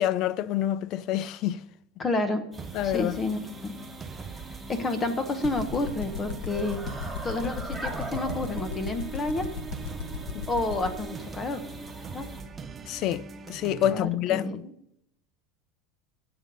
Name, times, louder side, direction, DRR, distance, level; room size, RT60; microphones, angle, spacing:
voice 1, 0.0-1.6 2.7-3.2 12.9-13.2 13.5-14.6, left 12 dB, 45° left, 0.4 m, -27 dB
voice 2, 2.0-2.4 2.8-3.8 4.7-6.8 7.2-9.5 10.5-11.6 12.1-12.3 13.9-14.7, left 2 dB, 20° left, 1.0 m, -30 dB
sound 1, 2.5-12.4, right 1 dB, 5° left, 1.9 m, -43 dB
sound 2, 2.6-14.0, right 5 dB, 20° right, 0.6 m, -42 dB
sound 3, 5.4-11.0, left 7 dB, 65° left, 1.7 m, -34 dB
12.0 x 7.6 x 5.5 m
supercardioid pair, 150°, 0 cm